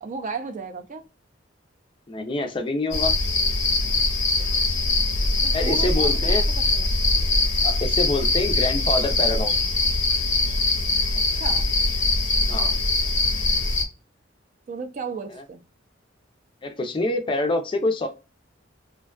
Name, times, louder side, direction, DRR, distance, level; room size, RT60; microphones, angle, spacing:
voice 1, 0.0-1.0 5.4-7.0 11.2-11.7 14.7-15.6, right 4 dB, 40° right, 0.3 m, -35 dB
voice 2, 2.1-3.1 5.5-6.4 7.6-9.7 12.5-12.7 15.3-15.4 16.6-18.1, left 2 dB, 25° left, 0.4 m, -26 dB
sound 1, 2.9-13.8, left 2 dB, 90° left, 0.8 m, -22 dB
2.5 x 2.2 x 2.2 m
head